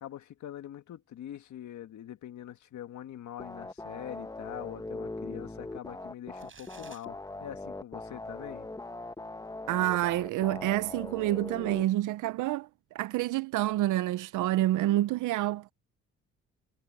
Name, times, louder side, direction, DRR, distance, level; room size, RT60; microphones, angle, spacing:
voice 1, 0.0-8.7, left 11 dB, 70° left, 1.8 m, -44 dB
sound 1, 3.4-11.8, left 2 dB, 10° left, 1.1 m, -41 dB
sound 2, 6.4-7.0, right 6 dB, 40° right, 4.9 m, -53 dB
voice 2, 9.7-15.7, right 15 dB, 85° right, 0.7 m, -28 dB
cardioid pair, 90°, 30 cm